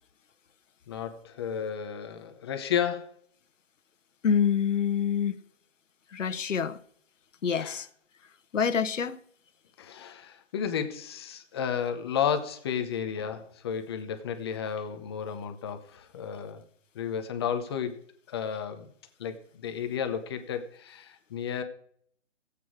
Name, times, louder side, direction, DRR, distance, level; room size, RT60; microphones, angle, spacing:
voice 1, 0.9-3.1 7.6-7.8 9.8-16.6 16.9-18.0 18.3-18.9 19.2-21.6, left 8 dB, 20° left, 0.7 m, -32 dB
voice 2, 4.2-5.3 6.1-6.8 7.4-7.9 8.5-9.2, left 7 dB, 80° left, 1.1 m, -26 dB
15.5 x 8.4 x 4.7 m
hypercardioid pair, 155°, 37 cm